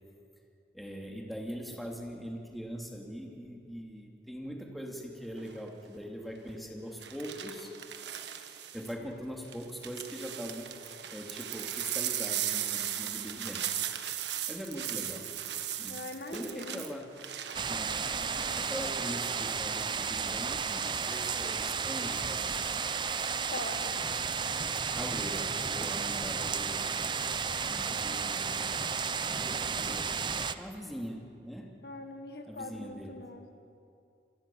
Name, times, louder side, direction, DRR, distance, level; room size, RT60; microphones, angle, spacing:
voice 1, 0.7-7.7 8.7-10.8 11.1-13.6 14.5-15.3 15.8-16.0 16.3-17.2 17.7-18.0 18.5-22.9 24.9-26.8 27.6-28.6 29.8-31.7 32.5-33.2, equal, ahead, 0 dB, 2.6 m, -42 dB
sound 1, 5.4-5.7 7.0-8.9 9.5-18.8 19.1-19.6, right 11 dB, 80° right, 1.5 m, -37 dB
voice 2, 15.9-16.8 23.5-24.0 31.8-33.5, left 2 dB, 65° left, 6 dB, 1.7 m, -42 dB
sound 2, 17.5-30.5, right 6 dB, 25° right, 0.7 m, -33 dB
27.5 x 19.5 x 7.2 m, 2.5 s
head